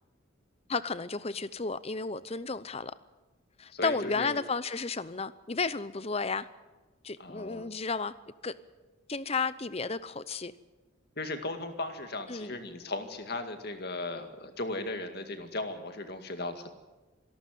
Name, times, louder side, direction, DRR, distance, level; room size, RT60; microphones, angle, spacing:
voice 1, 0.7-2.9 3.6-6.5 7.0-8.1 8.4-8.5 9.1-10.5 12.3-12.6, left 4 dB, 30° left, 15 dB, 0.7 m, -33 dB
voice 2, 3.7-4.4 7.2-7.6 11.2-16.7, left 2 dB, 50° left, 6 dB, 2.1 m, -37 dB
26.5 x 12.0 x 9.3 m, 1.2 s
head